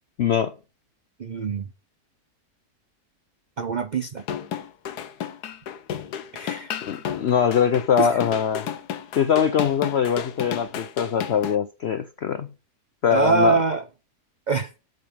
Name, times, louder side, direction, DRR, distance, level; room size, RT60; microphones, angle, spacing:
voice 1, 0.2-0.5 6.9-8.7 9.2-12.5 13.0-13.6, left 8 dB, 60° left, 0.7 m, -22 dB
voice 2, 1.2-1.7 3.6-4.2 6.3-6.7 8.0-8.2 13.1-13.8 14.5-14.7, right 4 dB, 85° right, 0.4 m, -23 dB
sound 1, 4.2-11.6, left 9 dB, 85° left, 1.4 m, -32 dB
7.8 x 5.2 x 7.2 m
omnidirectional pair, 1.7 m